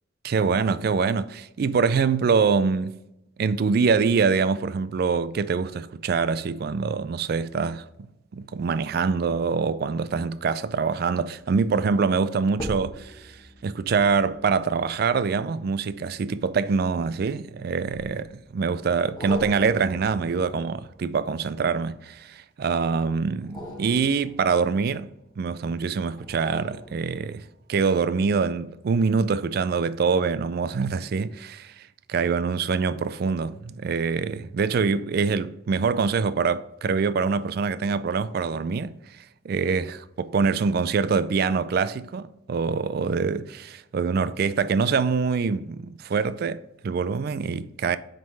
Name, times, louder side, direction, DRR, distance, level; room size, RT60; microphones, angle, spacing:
voice 1, 0.2-2.9 3.4-13.4 13.6-25.1 25.4-31.8 32.1-38.9 39.4-48.0, right 5 dB, 55° right, 0.3 m, -25 dB
sound 1, 12.6-17.2 17.9-18.5 19.2-22.1 23.3-25.4 26.2-27.6 28.1-28.2, equal, 20° left, 1.3 m, -42 dB
7.6 x 3.8 x 4.0 m
head